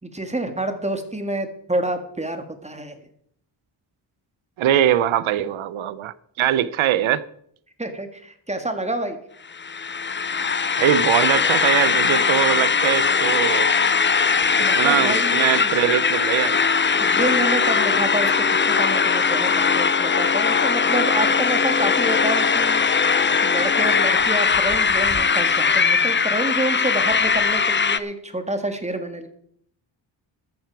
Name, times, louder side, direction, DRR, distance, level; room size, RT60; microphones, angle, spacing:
voice 1, 0.0-3.0 7.8-9.2 14.6-15.7 17.0-22.8 23.4-29.3, right 1 dB, 15° right, 1.9 m, -28 dB
voice 2, 4.6-7.2 10.8-13.7 14.6-16.6, right 11 dB, 85° right, 0.8 m, -22 dB
sound 1, 9.5-28.0, left 5 dB, 25° left, 0.6 m, -20 dB
13.5 x 9.5 x 4.7 m
cardioid pair, 80°, 47 cm